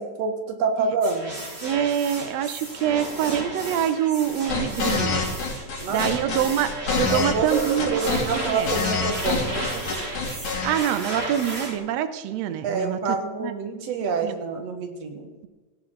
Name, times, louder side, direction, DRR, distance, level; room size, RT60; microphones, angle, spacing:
voice 1, 0.0-1.3 5.8-6.2 7.1-9.8 12.6-15.3, right 4 dB, 55° right, 4 dB, 2.4 m, -27 dB
sound 1, 1.0-11.7, right 1 dB, 25° right, 1.8 m, -34 dB
voice 2, 1.6-5.2 5.9-8.7 10.6-13.0 13.4-13.5 14.2-14.3, right 10 dB, 90° right, 11 dB, 1.5 m, -25 dB
sound 2, 4.2-10.7, left 4 dB, 45° left, 2.6 m, -26 dB
17.0 x 10.5 x 3.9 m, 1.3 s
omnidirectional pair, 4.0 m